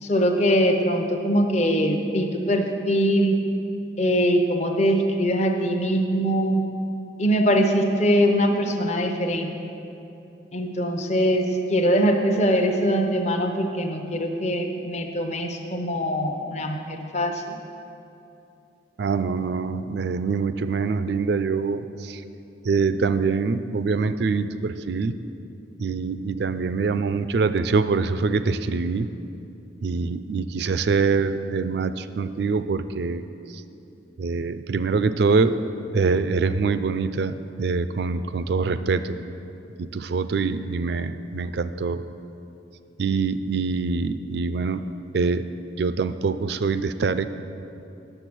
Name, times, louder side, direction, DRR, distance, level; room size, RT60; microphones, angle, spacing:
voice 1, 0.0-3.4 4.0-6.6 7.2-9.5 10.5-17.4, equal, 35° left, 4 dB, 0.7 m, -22 dB
voice 2, 19.0-22.2 22.6-25.1 25.8-29.1 29.8-33.2 33.5-33.6 34.2-35.6 35.9-39.2 39.8-42.0 43.0-44.8 45.1-45.4 45.8-47.3, right 4 dB, 60° right, 12 dB, 0.4 m, -24 dB
10.0 x 7.3 x 6.1 m, 2.8 s
head